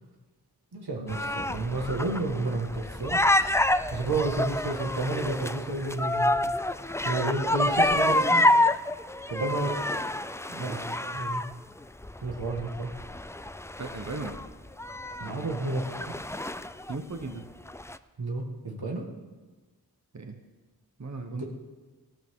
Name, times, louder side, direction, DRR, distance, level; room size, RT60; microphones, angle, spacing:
voice 1, 0.7-3.2 3.9-6.4 7.0-8.4 9.3-9.8 10.5-11.4 12.2-12.9 15.2-16.1 18.2-19.0 21.3-21.5, right 3 dB, 90° right, 1 dB, 1.8 m, -31 dB
sound 1, 1.1-11.5 12.0-17.0 17.2-17.3 17.7-18.0, left 1 dB, 10° left, 0.4 m, -28 dB
voice 2, 13.8-14.4 16.9-17.5 20.1-20.4 21.0-21.5, right 3 dB, 45° right, 5 dB, 1.1 m, -36 dB
18.5 x 13.5 x 3.7 m, 1.3 s
wide cardioid pair, 45°, 37 cm